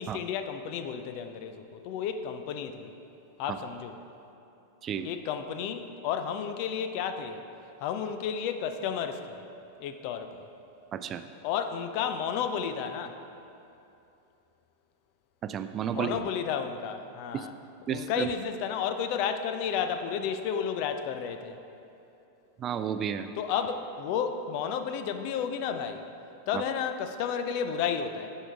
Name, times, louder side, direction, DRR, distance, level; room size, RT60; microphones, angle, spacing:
voice 1, 0.0-2.9 3.4-4.0 5.0-7.4 7.8-9.4 9.8-10.5 11.4-13.2 15.9-17.5 17.9-21.6 23.3-26.1 26.5-28.3, left 7 dB, 45° left, 9 dB, 0.5 m, -32 dB
voice 2, 10.9-11.2 15.4-16.2 17.3-17.5 17.9-18.3 22.6-23.3, right 8 dB, 30° right, 10 dB, 0.3 m, -31 dB
9.9 x 4.8 x 4.6 m, 2.8 s
figure-of-eight pair, 90°, 0 cm